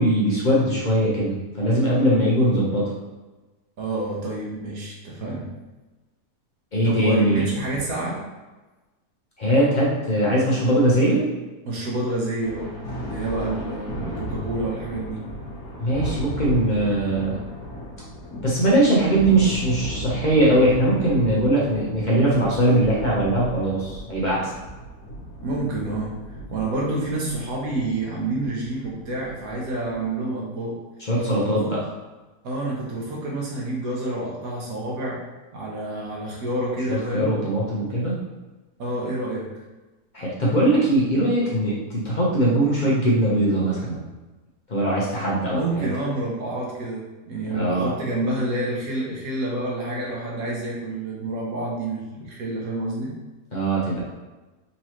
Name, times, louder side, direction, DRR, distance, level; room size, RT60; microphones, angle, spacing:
voice 1, 0.0-2.8 6.7-7.4 9.4-11.2 15.8-17.4 18.4-24.5 31.1-31.8 36.9-38.1 40.1-44.0 44.7-45.9 47.5-47.9 53.5-54.0, right 1 dB, 40° left, -6 dB, 0.7 m, -21 dB
voice 2, 3.8-5.5 6.8-8.2 11.6-15.2 25.4-26.1 26.5-30.8 31.4-31.7 32.4-35.2 35.5-37.3 38.8-39.5 45.5-53.1, right 2 dB, 70° right, -3 dB, 1.2 m, -28 dB
Thunder, 12.4-30.1, equal, 70° left, 1.4 m, -36 dB
4.1 x 3.0 x 2.9 m, 1.2 s
omnidirectional pair, 1.6 m